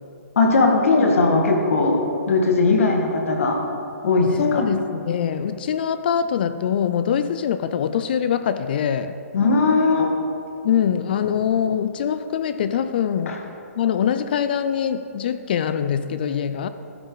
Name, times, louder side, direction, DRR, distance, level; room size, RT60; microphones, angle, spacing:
voice 1, 0.4-2.0 2.3-3.6 4.0-4.6 9.3-10.1 13.3-13.4, left 3 dB, 60° left, 2 dB, 1.8 m, -18 dB
voice 2, 4.4-9.2 10.6-13.4 13.8-16.7, left 8 dB, 40° left, 11 dB, 0.4 m, -23 dB
12.0 x 10.0 x 4.0 m, 2.7 s
hypercardioid pair, 160°, 8 cm